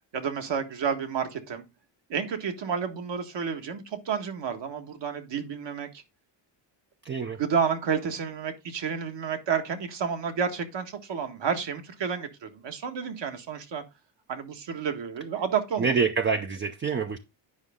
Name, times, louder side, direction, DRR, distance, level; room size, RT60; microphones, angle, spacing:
voice 1, 0.1-1.7 2.1-5.9 7.4-13.8 14.3-16.0, right 6 dB, 60° right, 1.6 m, -30 dB
voice 2, 7.0-7.4 15.8-17.2, right 5 dB, 25° right, 0.5 m, -26 dB
9.6 x 5.2 x 3.6 m
cardioid pair, 105°, 49 cm